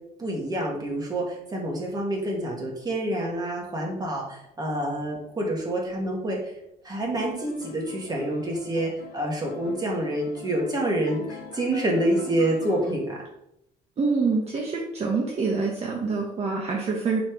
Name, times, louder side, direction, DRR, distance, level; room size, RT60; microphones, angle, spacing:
voice 1, 0.2-6.6 6.8-13.2, right 1 dB, 25° right, -2 dB, 2.3 m, -27 dB
sound 1, 7.2-13.0, left 8 dB, 85° left, 1.0 m, -43 dB
voice 2, 14.0-17.2, right 4 dB, 40° right, -1 dB, 1.2 m, -26 dB
6.0 x 4.3 x 5.0 m, 0.79 s
cardioid pair, 110°, 17 cm